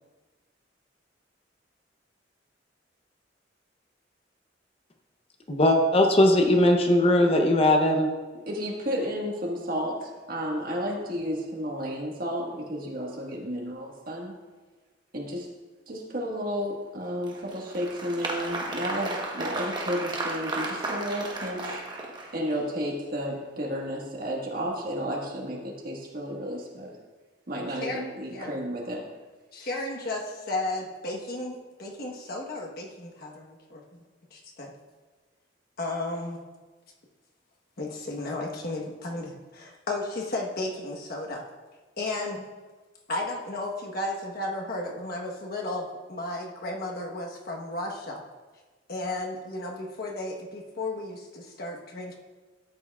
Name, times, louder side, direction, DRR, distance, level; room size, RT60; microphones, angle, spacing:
voice 1, 5.5-8.1, left 1 dB, 30° left, 3 dB, 0.7 m, -20 dB
voice 2, 8.5-14.3 15.1-15.5 15.9-21.8 22.3-26.9 27.5-29.0, equal, 50° right, -1 dB, 1.5 m, -32 dB
Applause, 17.2-22.6, right 2 dB, 25° right, 1.0 m, -34 dB
voice 3, 29.5-34.0 34.3-34.7 35.8-36.4 37.8-41.4 42.0-42.4 43.1-48.2 48.9-52.2, left 2 dB, 55° left, 0 dB, 1.2 m, -34 dB
12.5 x 8.2 x 2.4 m, 1.3 s
head